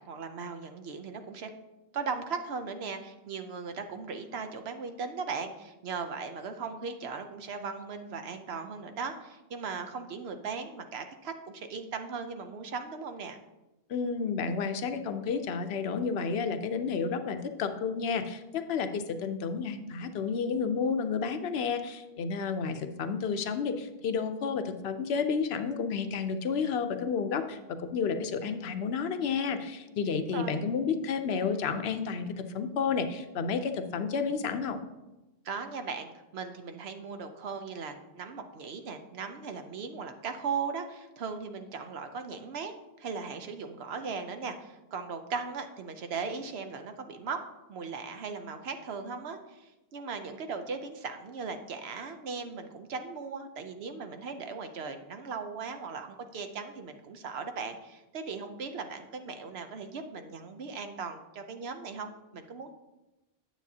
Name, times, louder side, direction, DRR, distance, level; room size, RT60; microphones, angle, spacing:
voice 1, 0.1-1.5 1.9-13.4 30.1-30.6 35.4-42.7 43.0-47.4 47.7-62.7, right 5 dB, 80° right, 7 dB, 1.0 m, -38 dB
voice 2, 13.9-34.8, left 5 dB, 80° left, 9 dB, 0.9 m, -31 dB
9.1 x 7.5 x 2.8 m, 1.0 s
omnidirectional pair, 1.1 m